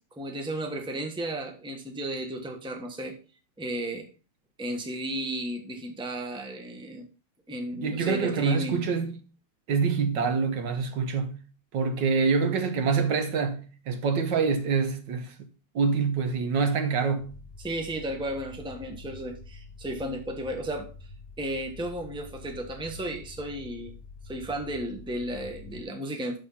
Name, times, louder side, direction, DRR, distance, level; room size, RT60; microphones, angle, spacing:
voice 1, 0.2-3.2 3.6-4.1 4.6-7.1 7.5-8.8 17.6-20.9 21.4-23.9 24.2-26.4, right 1 dB, 5° right, 1.0 m, -34 dB
voice 2, 7.7-9.2 9.7-11.4 11.7-15.3 15.8-17.4, right 5 dB, 70° right, 1.6 m, -26 dB
sound 1, 17.2-25.8, left 3 dB, 45° left, 1.1 m, -46 dB
6.4 x 6.3 x 5.6 m
omnidirectional pair, 2.1 m